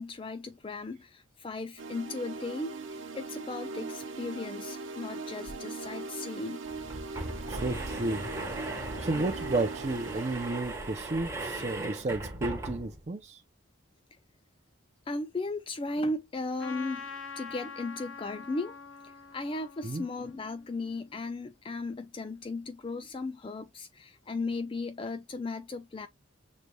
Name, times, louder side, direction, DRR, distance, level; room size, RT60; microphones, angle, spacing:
voice 1, 0.0-6.6 15.1-18.8 19.0-26.1, left 3 dB, 25° left, 0.3 m, -36 dB
sound 1, 1.8-11.9, right 3 dB, 65° right, 1.0 m, -40 dB
Door opening, 5.5-5.6 5.8-5.9 6.7-13.1, right 2 dB, 15° right, 1.2 m, -38 dB
voice 2, 7.5-8.2 9.0-13.4 19.8-20.1, right 2 dB, 35° right, 0.5 m, -32 dB
Trumpet, 16.6-21.2, left 5 dB, 75° left, 0.7 m, -45 dB
6.6 x 3.1 x 2.2 m
head